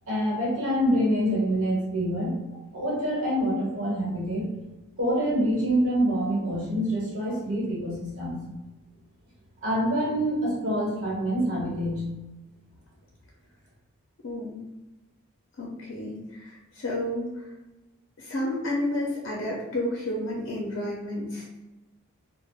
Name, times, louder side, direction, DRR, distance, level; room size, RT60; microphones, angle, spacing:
voice 1, 0.1-2.4 2.7-4.5 5.0-8.4 9.6-12.1, equal, 70° right, -5 dB, 1.1 m, -26 dB
voice 2, 14.2-14.6 15.6-17.5 18.2-21.6, left 1 dB, 55° left, -3 dB, 0.5 m, -31 dB
3.3 x 2.1 x 2.3 m, 1.1 s
head